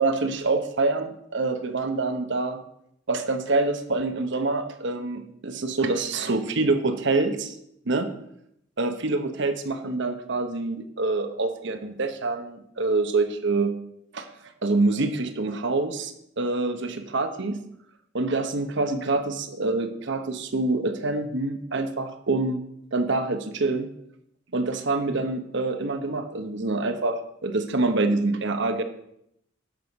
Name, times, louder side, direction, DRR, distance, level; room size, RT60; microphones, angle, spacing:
voice 1, 0.0-2.6 3.1-7.6 7.8-8.1 8.8-13.8 14.1-14.3 14.6-17.6 18.1-22.6 22.9-23.9 24.5-28.8, right 3 dB, 65° right, 8 dB, 1.1 m, -26 dB
11.0 x 6.4 x 5.3 m, 0.76 s
head